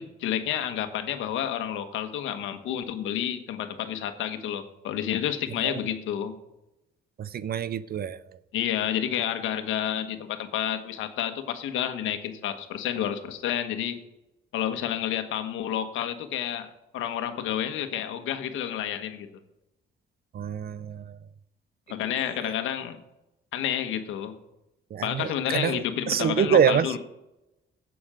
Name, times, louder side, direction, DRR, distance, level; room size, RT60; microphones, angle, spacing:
voice 1, 0.0-6.3 8.5-14.1 14.5-19.3 21.9-23.0 23.5-24.4 25.0-27.0, left 10 dB, 90° left, 1.2 m, -30 dB
voice 2, 7.2-8.4 20.3-21.2 22.4-22.5 24.9-27.0, right 8 dB, 50° right, 0.6 m, -26 dB
16.0 x 6.2 x 5.0 m
cardioid pair, 90°, 20 cm